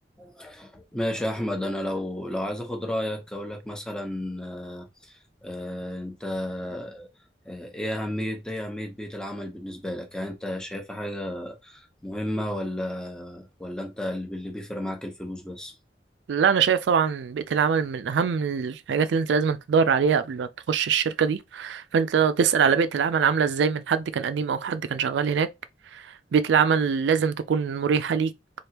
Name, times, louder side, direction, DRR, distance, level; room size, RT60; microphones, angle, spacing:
voice 1, 0.2-7.1 7.4-15.7, left 1 dB, 5° left, 0.8 m, -33 dB
voice 2, 16.3-25.5 25.9-26.0 26.3-28.3, right 6 dB, 90° right, 0.4 m, -23 dB
3.4 x 2.4 x 2.9 m
head